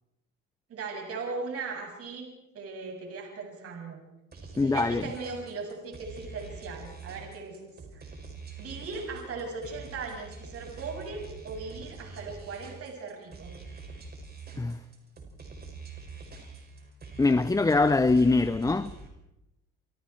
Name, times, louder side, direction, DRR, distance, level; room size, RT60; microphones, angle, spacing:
voice 1, 0.7-4.0 4.6-7.7 7.9-8.1 8.6-13.6, right 4 dB, 50° right, 7.3 m, -38 dB
sound 1, 4.3-19.1, right 4 dB, 35° right, 6.6 m, -45 dB
voice 2, 4.6-5.0 14.6-14.8 17.2-18.9, left 3 dB, 10° left, 0.7 m, -23 dB
27.5 x 26.5 x 4.7 m
supercardioid pair, 90°, 29 cm